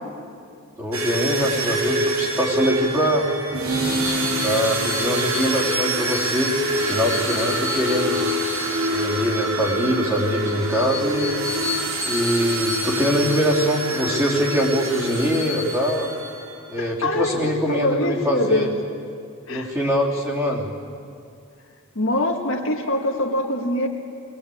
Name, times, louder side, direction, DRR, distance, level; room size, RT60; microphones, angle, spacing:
voice 1, 0.8-3.3 4.4-6.5 6.8-8.2 8.9-11.4 12.0-16.1 16.7-18.7 19.5-20.7, equal, 15° right, -4 dB, 3.1 m, -23 dB
sound 1, 0.9-16.5, right 1 dB, 75° right, 3.0 m, -25 dB
voice 2, 16.8-18.7 19.5-19.7 22.0-23.9, left 1 dB, 65° left, 1 dB, 2.0 m, -24 dB
22.0 x 19.0 x 8.5 m, 2.3 s
head